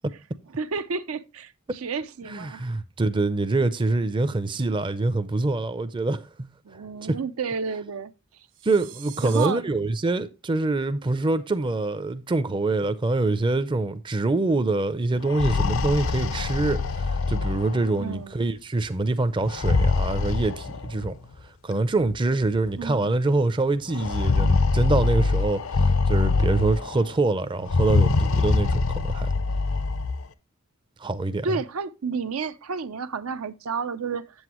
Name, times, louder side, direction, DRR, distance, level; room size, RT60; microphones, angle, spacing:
voice 1, 0.6-2.6 6.6-8.1 9.2-9.6 18.0-18.4 22.8-23.1 31.4-34.3, right 5 dB, 85° right, 0.6 m, -31 dB
voice 2, 2.2-7.2 8.6-21.2 21.6-29.3 31.0-31.5, right 2 dB, 25° right, 0.5 m, -25 dB
sound 1, 8.5-9.5, right 12 dB, 65° right, 1.6 m, -43 dB
sound 2, 15.2-18.1 19.4-21.1 22.1-22.2 22.6-22.7 23.9-27.1 27.6-30.2, left 3 dB, 75° left, 0.6 m, -24 dB
8.0 x 7.7 x 2.9 m
head